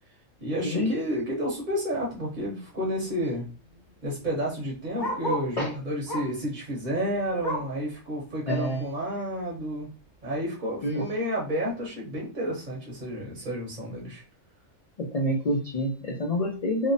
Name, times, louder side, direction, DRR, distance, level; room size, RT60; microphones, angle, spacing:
voice 1, 0.4-3.4 4.0-9.9 10.2-14.2, equal, 45° right, -3 dB, 0.8 m, -31 dB
Bark, 1.8-2.1 2.4-2.5 2.7-5.6 6.0-6.5 6.8-7.8 8.3-8.4 8.8-8.9 9.6-9.7, equal, 20° left, 0.9 m, -34 dB
voice 2, 8.5-8.8 10.8-11.0 15.0-16.9, equal, 75° left, -1 dB, 0.3 m, -27 dB
2.8 x 2.0 x 2.6 m, 0.36 s
omnidirectional pair, 1.3 m